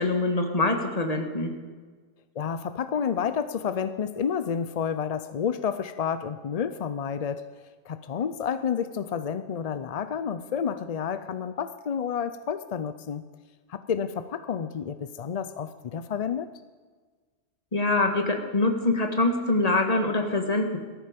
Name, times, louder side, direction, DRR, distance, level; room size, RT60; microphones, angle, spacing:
voice 1, 0.0-1.5 17.7-20.8, left 2 dB, 30° left, 4 dB, 1.7 m, -24 dB
voice 2, 2.4-7.5 7.9-13.2 13.7-16.5, left 7 dB, 55° left, 12 dB, 0.4 m, -30 dB
17.5 x 13.5 x 5.2 m, 1.4 s
omnidirectional pair, 1.3 m